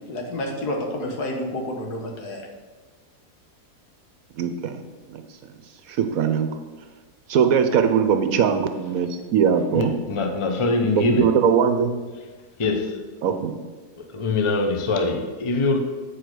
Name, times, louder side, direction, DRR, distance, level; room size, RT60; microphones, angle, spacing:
voice 1, 0.1-2.4, left 1 dB, 75° left, 1 dB, 1.9 m, -29 dB
voice 2, 4.4-4.8 5.1-5.2 5.9-6.5 7.3-9.9 11.0-11.9 13.2-13.6, right 7 dB, 65° right, 7 dB, 1.0 m, -20 dB
voice 3, 9.7-11.3 12.6-13.0 14.0-15.8, left 3 dB, 30° left, 4 dB, 0.5 m, -23 dB
8.1 x 5.0 x 6.0 m, 1.3 s
omnidirectional pair, 1.7 m